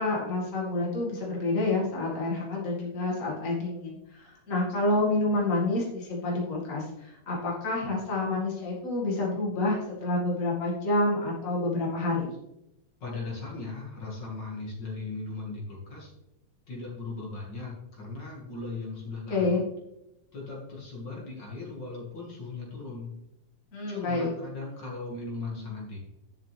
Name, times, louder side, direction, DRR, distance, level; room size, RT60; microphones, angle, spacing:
voice 1, 0.0-3.9 4.2-12.3 19.3-19.6 23.7-24.3, left 2 dB, 40° left, -4 dB, 2.4 m, -28 dB
voice 2, 13.0-16.1 16.7-19.6 20.3-23.1 23.9-26.0, left 3 dB, 55° left, -3 dB, 2.8 m, -38 dB
11.5 x 7.2 x 3.4 m, 0.87 s
omnidirectional pair, 2.3 m